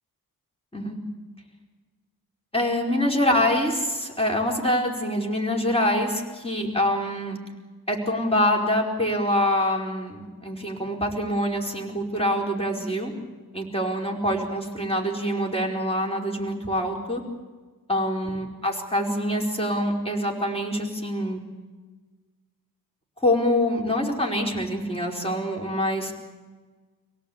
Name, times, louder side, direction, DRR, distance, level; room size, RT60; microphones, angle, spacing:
voice 1, 2.5-7.4 7.9-13.1 13.5-17.2 17.9-21.4 23.2-26.1, left 1 dB, 15° left, 0 dB, 4.7 m, -25 dB
27.0 x 17.5 x 8.7 m, 1.4 s
wide cardioid pair, 90°, 37 cm